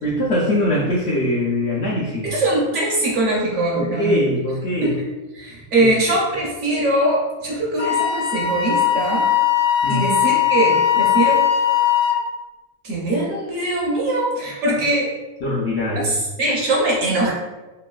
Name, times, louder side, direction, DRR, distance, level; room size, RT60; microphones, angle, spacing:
voice 1, 0.0-2.4 3.7-5.0 5.8-5.9 9.8-10.1 15.4-16.1, left 1 dB, 70° left, -6 dB, 0.6 m, -22 dB
voice 2, 2.2-4.2 4.8-5.0 5.3-9.3 9.9-11.4 12.8-15.1 16.0-17.3, right 1 dB, 65° right, -3 dB, 0.8 m, -21 dB
Wind instrument woodwind instrument, 7.8-12.2, left 9 dB, 85° left, 1.1 m, -19 dB
3.0 x 2.5 x 2.2 m, 1.1 s
omnidirectional pair, 1.6 m